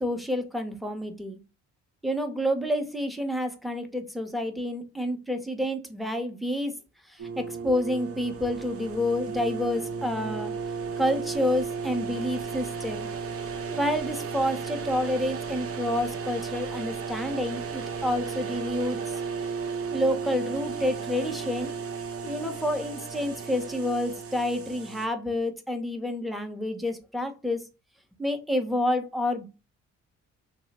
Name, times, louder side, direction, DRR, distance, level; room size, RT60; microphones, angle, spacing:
voice 1, 0.0-1.4 2.0-6.7 7.1-10.5 11.0-13.1 13.7-19.0 19.9-21.7 22.2-27.6 28.2-29.4, left 1 dB, ahead, 0.6 m, -29 dB
sound 1, 7.2-25.1, right 5 dB, 50° right, 0.7 m, -34 dB
3.1 x 2.0 x 4.0 m
cardioid pair, 90°, 30 cm